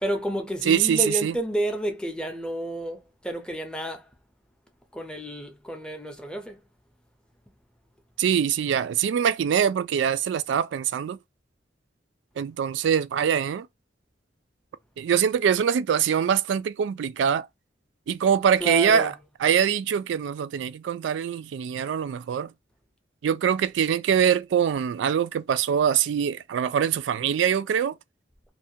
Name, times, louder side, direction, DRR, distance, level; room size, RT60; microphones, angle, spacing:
voice 1, 0.0-4.1 4.9-6.6 18.6-19.1, right 1 dB, 5° left, 0.5 m, -30 dB
voice 2, 0.7-1.4 8.2-11.2 12.4-13.7 15.0-17.5 18.1-19.1 19.4-22.5 23.2-28.0, right 8 dB, 85° right, 0.3 m, -23 dB
2.4 x 2.2 x 2.7 m
head